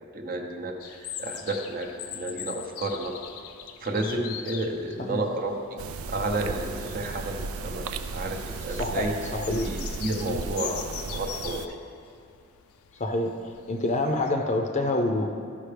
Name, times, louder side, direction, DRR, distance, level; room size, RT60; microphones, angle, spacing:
voice 1, 0.0-3.1 3.8-5.8 6.1-9.1 9.6-10.8 11.1-11.6, right 2 dB, 40° right, 2 dB, 0.8 m, -31 dB
sound 1, 0.8-14.3, left 10 dB, 85° left, 0.4 m, -42 dB
sound 2, 5.8-11.7, right 4 dB, 80° right, 0.4 m, -35 dB
voice 2, 8.7-9.7 10.2-10.4 13.0-13.3 13.7-15.3, left 2 dB, 35° left, 4 dB, 0.6 m, -27 dB
14.0 x 5.5 x 3.4 m, 2.4 s
head